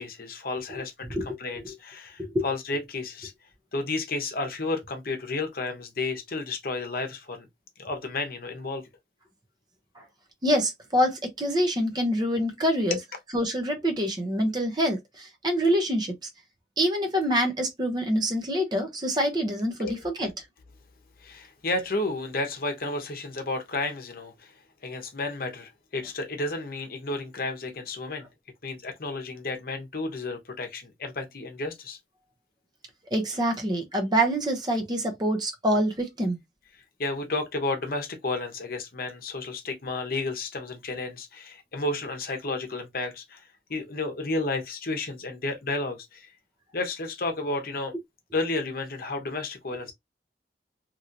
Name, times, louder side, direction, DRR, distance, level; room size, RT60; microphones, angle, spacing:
voice 1, 0.0-3.3 3.7-7.5 7.8-8.9 12.9-13.0 19.8-19.9 21.2-24.6 24.8-28.3 28.6-32.0 37.0-46.3 46.7-47.9 48.3-49.9, left 2 dB, 55° left, 0.8 m, -32 dB
voice 2, 10.4-13.0 13.3-16.1 16.8-20.3 33.1-36.4, equal, 25° right, 0.7 m, -26 dB
2.9 x 2.8 x 2.5 m
head